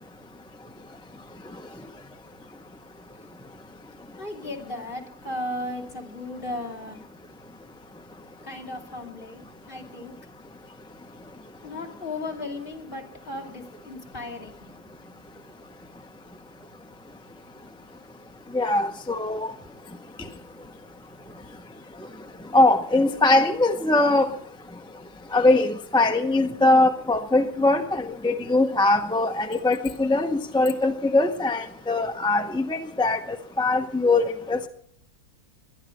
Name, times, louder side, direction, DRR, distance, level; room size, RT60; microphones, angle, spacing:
voice 1, 4.2-7.0 8.4-10.1 11.6-15.2, left 2 dB, 35° left, 0 dB, 2.8 m, -36 dB
voice 2, 18.5-19.5 22.5-24.3 25.3-34.7, left 2 dB, 5° left, 5 dB, 0.5 m, -21 dB
21.5 x 11.5 x 5.1 m, 0.64 s
omnidirectional pair, 1.7 m